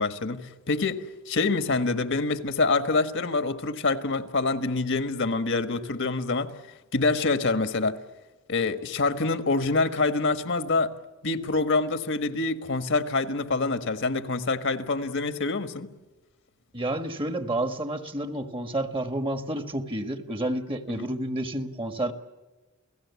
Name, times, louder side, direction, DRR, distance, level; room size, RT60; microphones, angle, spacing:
voice 1, 0.0-6.5 6.9-8.0 8.5-10.9 11.2-15.9 21.0-21.1, left 3 dB, 55° left, 1.5 m, -26 dB
voice 2, 16.7-22.1, right 1 dB, 25° right, 1.6 m, -30 dB
29.0 x 17.5 x 8.4 m
head